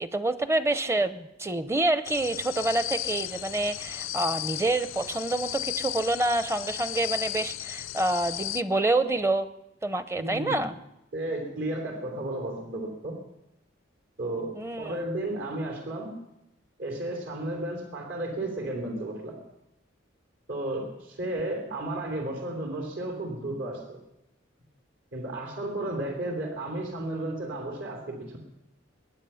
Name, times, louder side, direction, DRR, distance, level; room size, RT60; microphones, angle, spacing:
voice 1, 0.0-9.5 9.8-10.8 14.5-15.0, right 2 dB, 15° right, 11 dB, 0.6 m, -27 dB
sound 1, 2.0-8.6, left 14 dB, 85° left, 0.5 m, -35 dB
voice 2, 10.2-10.6 11.1-13.2 14.2-16.2 16.8-19.4 20.5-24.0 25.1-28.4, right 1 dB, 75° right, 2 dB, 3.1 m, -33 dB
22.5 x 9.8 x 5.7 m, 0.87 s
head